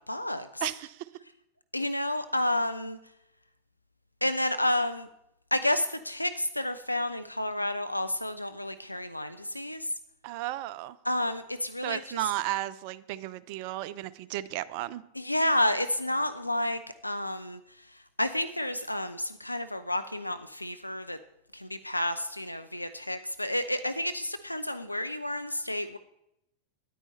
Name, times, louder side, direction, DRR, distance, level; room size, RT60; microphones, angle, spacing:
voice 1, 0.1-0.6 1.7-3.0 4.2-5.1 5.5-9.9 11.0-12.2 15.2-17.6 18.2-21.2 21.5-26.0, left 1 dB, 85° left, 10 dB, 0.4 m, -30 dB
voice 2, 0.6-1.1 10.2-10.9 11.8-15.0, right 16 dB, 45° right, 17 dB, 0.4 m, -34 dB
10.0 x 9.1 x 4.2 m, 0.82 s
figure-of-eight pair, 90°, 0 cm